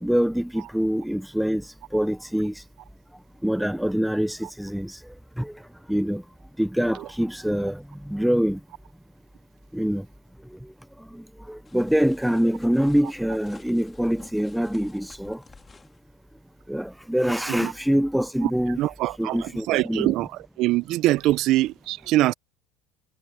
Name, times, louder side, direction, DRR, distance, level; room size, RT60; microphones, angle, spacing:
voice 1, 0.0-1.6 1.9-2.5 3.4-5.0 5.4-5.5 5.9-6.2 6.6-8.6 9.7-10.1 11.1-15.4 16.7-18.8 19.2-20.1, equal, ahead, 0.4 m, -25 dB
sound 1, 11.6-16.0, left 4 dB, 20° left, 2.9 m, -51 dB
voice 2, 18.8-20.3 20.6-22.3, right 16 dB, 60° right, 0.5 m, -23 dB
supercardioid pair, 100°, 0 cm